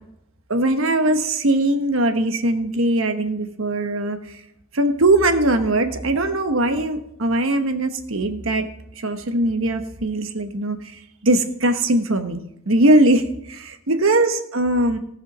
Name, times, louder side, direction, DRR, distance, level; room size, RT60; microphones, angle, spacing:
voice 1, 0.5-4.2 4.7-8.7 9.0-10.8 11.2-12.4 12.7-15.0, right 1 dB, 75° right, 7 dB, 1.2 m, -20 dB
17.0 x 5.7 x 6.1 m, 0.78 s
head